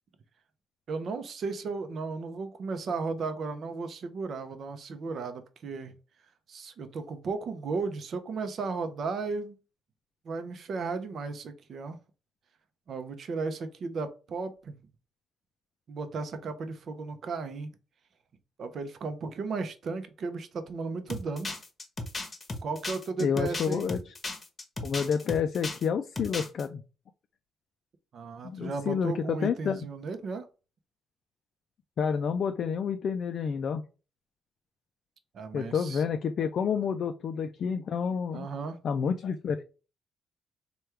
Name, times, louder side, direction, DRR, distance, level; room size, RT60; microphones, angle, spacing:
voice 1, 0.9-5.9 6.5-9.6 10.2-12.0 12.9-14.7 15.9-17.7 18.6-21.6 22.6-23.9 28.1-30.5 35.3-36.0 38.3-38.8, right 4 dB, 60° right, 9 dB, 0.6 m, -35 dB
sound 1, 21.1-25.9 26.1-26.6, left 2 dB, 30° left, 0.9 m, -36 dB
voice 2, 23.2-24.1 24.8-26.8 28.4-29.8 32.0-33.8 35.5-38.5 38.8-39.6, left 6 dB, 60° left, 7 dB, 0.3 m, -29 dB
3.4 x 2.3 x 4.4 m, 0.33 s
cardioid pair, 90°, 0 cm